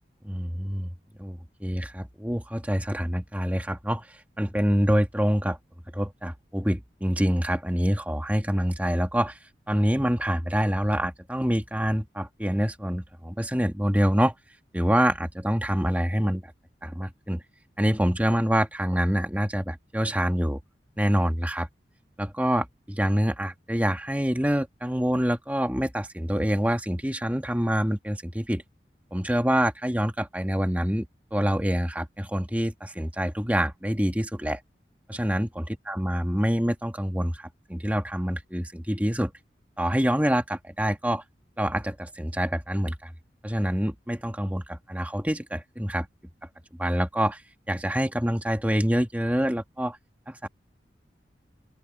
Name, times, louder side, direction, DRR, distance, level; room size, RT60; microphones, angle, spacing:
voice 1, 0.2-0.9 1.2-5.6 5.9-9.4 9.7-14.3 14.7-16.5 16.8-17.4 17.8-20.6 21.0-21.7 22.2-28.6 29.1-31.1 31.3-34.6 35.1-39.3 39.8-41.2 41.6-43.1 43.4-46.1 46.8-47.4 47.7-50.0 50.3-50.5, equal, 10° right, 2.0 m, -26 dB
open air
head